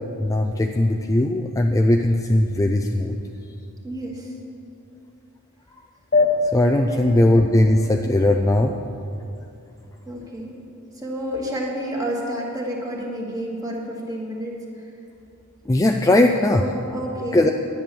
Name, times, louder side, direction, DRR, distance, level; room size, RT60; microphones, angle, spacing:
voice 1, 0.2-3.2 6.5-8.7 15.7-16.6 17.3-17.5, left 1 dB, 15° left, 3 dB, 0.4 m, -19 dB
voice 2, 3.8-4.3 6.9-7.2 10.1-10.6 10.9-14.9 16.5-17.5, equal, 15° right, -2 dB, 2.0 m, -30 dB
sound 1, 6.1-9.1, left 3 dB, 45° left, 1.1 m, -25 dB
10.5 x 9.6 x 7.0 m, 2.6 s
head